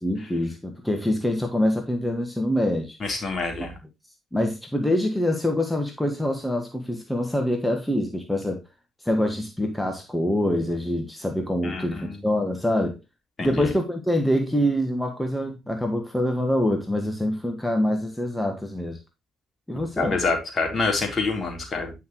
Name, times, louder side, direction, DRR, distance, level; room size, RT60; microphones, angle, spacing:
voice 1, 0.0-3.0 3.6-3.7 4.3-8.6 9.0-13.0 13.4-19.0 19.7-20.2, left 1 dB, 5° left, 1.6 m, -25 dB
voice 2, 3.0-3.7 11.6-12.2 13.4-13.7 20.0-21.9, left 3 dB, 40° left, 3.6 m, -27 dB
9.6 x 6.0 x 3.1 m
hypercardioid pair, 45°, 0 cm